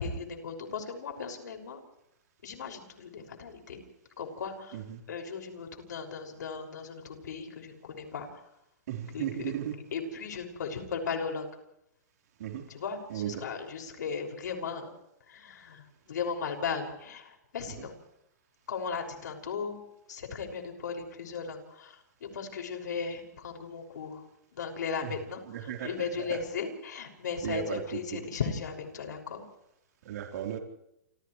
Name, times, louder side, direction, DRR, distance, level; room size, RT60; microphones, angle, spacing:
voice 1, 0.0-1.8 2.4-3.8 4.2-4.8 5.1-8.4 9.1-9.5 9.9-11.5 12.7-14.9 15.3-18.0 18.7-19.8 20.1-24.2 24.5-29.4, left 5 dB, 80° left, 3 dB, 6.1 m, -36 dB
voice 2, 8.9-9.7 12.4-12.6 13.1-13.4 17.8-17.9 25.0-25.1 25.5-25.9 26.2-26.4 27.4-27.8 28.1-28.2 30.0-30.6, right 10 dB, 65° right, 2 dB, 4.0 m, -35 dB
29.0 x 28.5 x 3.3 m, 0.82 s
hypercardioid pair, 145°, 9 cm